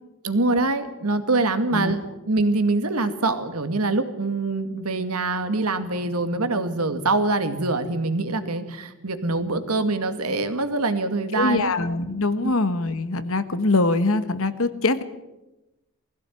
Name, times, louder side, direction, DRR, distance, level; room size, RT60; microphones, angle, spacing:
voice 1, 0.2-11.7 12.4-12.5, right 2 dB, 85° right, 9 dB, 2.1 m, -24 dB
voice 2, 11.3-15.0, left 2 dB, 65° left, 11 dB, 1.5 m, -23 dB
21.0 x 16.0 x 9.3 m, 1.0 s
head